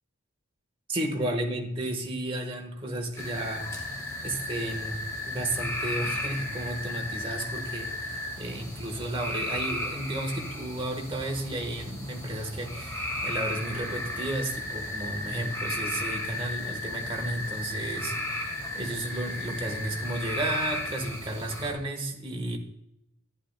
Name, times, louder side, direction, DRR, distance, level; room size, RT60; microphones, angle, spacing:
voice 1, 0.9-3.7 4.2-5.0 5.2-22.6, right 1 dB, 25° right, 2 dB, 1.3 m, -33 dB
sound 1, 3.1-21.7, left 1 dB, 15° left, 1.9 m, -34 dB
11.5 x 10.0 x 2.2 m, 0.80 s
head